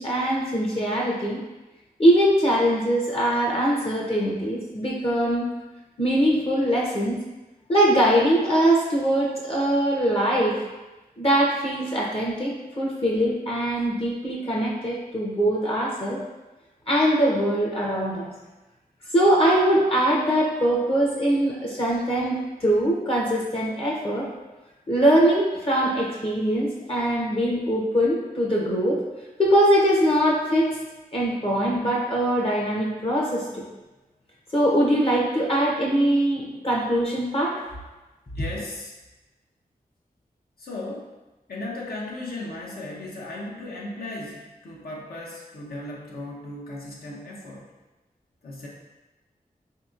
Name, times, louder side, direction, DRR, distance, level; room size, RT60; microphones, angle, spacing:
voice 1, 0.0-1.4 2.0-5.5 6.0-7.2 7.7-10.5 11.2-16.2 16.9-18.3 19.1-24.3 24.9-29.0 29.4-30.7 31.1-33.6 34.5-37.6, right 1 dB, 35° left, -3 dB, 0.7 m, -22 dB
voice 2, 38.3-38.9 40.6-41.1 41.5-47.7 48.4-48.7, left 2 dB, 75° left, -4 dB, 0.7 m, -36 dB
3.6 x 2.8 x 2.4 m, 1.1 s
cardioid pair, 55°, 16 cm